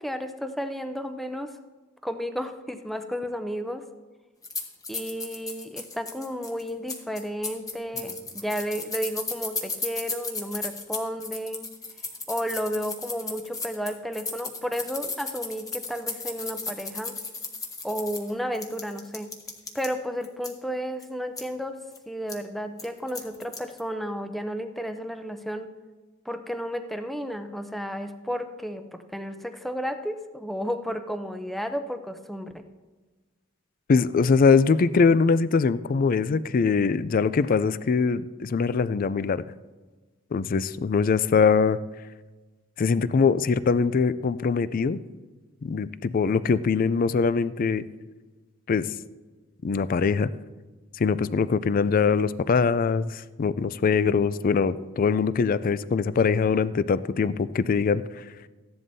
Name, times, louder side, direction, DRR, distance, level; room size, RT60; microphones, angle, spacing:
voice 1, 0.0-1.5 2.0-3.8 4.9-11.7 12.3-17.2 17.8-19.4 19.7-21.8 22.1-25.7 26.3-32.6, equal, ahead, 7 dB, 0.6 m, -32 dB
sound 1, 4.4-19.9 20.2-20.5 21.0-21.1 21.4-21.5 21.9-22.0 22.3-22.4 22.8-23.8, left 3 dB, 20° left, 1.1 m, -35 dB
voice 2, 33.9-39.4 40.3-41.8 42.8-45.0 45.6-47.8 48.7-48.9 49.6-50.3 51.0-58.2, left 5 dB, 45° left, 16 dB, 0.4 m, -22 dB
14.5 x 11.0 x 2.7 m, 1.3 s
head